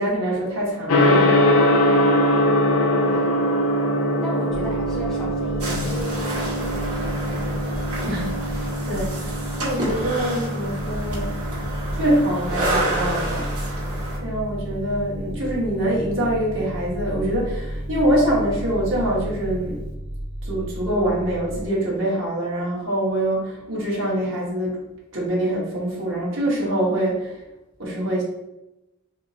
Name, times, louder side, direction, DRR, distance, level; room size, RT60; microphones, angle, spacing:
voice 1, 0.0-1.4 8.0-11.4 11.9-13.5 14.2-19.8 20.4-24.8 25.1-27.4 27.8-28.2, right 1 dB, 60° right, -5 dB, 1.3 m, -24 dB
Gong, 0.9-19.9, left 1 dB, 70° left, 0.5 m, -24 dB
voice 2, 4.2-7.7, right 1 dB, ahead, -6 dB, 0.5 m, -36 dB
sound 1, 4.5-21.7, equal, 15° right, 0.8 m, -33 dB
sound 2, 5.6-14.2, right 1 dB, 80° right, 1.4 m, -30 dB
4.2 x 2.0 x 2.7 m, 0.93 s
head